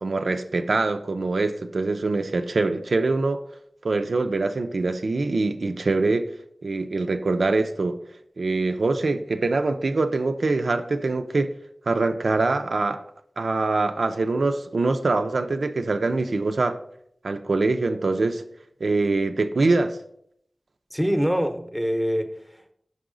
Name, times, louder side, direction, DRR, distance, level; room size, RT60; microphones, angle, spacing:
voice 1, 0.0-3.4 3.8-6.3 6.6-8.0 8.4-11.5 11.9-13.0 13.4-16.8 17.2-18.4 18.8-20.0, right 3 dB, 90° right, 0.4 m, -24 dB
voice 2, 20.9-22.7, equal, ahead, 0.7 m, -25 dB
5.5 x 4.8 x 3.8 m
wide cardioid pair, 60°, 0 cm